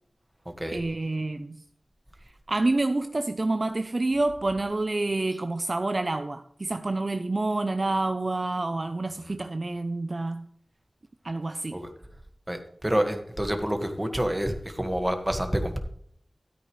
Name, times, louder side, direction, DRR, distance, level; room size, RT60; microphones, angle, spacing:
voice 1, 0.7-1.6 2.5-10.5 11.2-11.8, right 2 dB, 45° right, 0.6 m, -28 dB
voice 2, 12.5-15.8, equal, 10° right, 1.7 m, -28 dB
13.0 x 8.7 x 3.2 m
wide cardioid pair, 70°, 0 cm